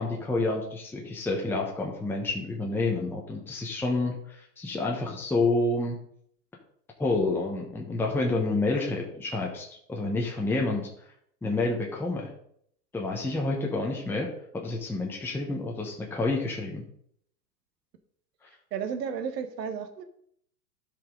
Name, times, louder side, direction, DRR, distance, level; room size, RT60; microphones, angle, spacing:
voice 1, 0.0-6.0 7.0-10.9 11.4-12.3 12.9-16.8, left 2 dB, 5° left, -1 dB, 1.0 m, -29 dB
voice 2, 18.7-20.0, right 7 dB, 75° right, 8 dB, 1.4 m, -33 dB
12.0 x 5.2 x 3.8 m, 0.67 s
hypercardioid pair, 125°, 49 cm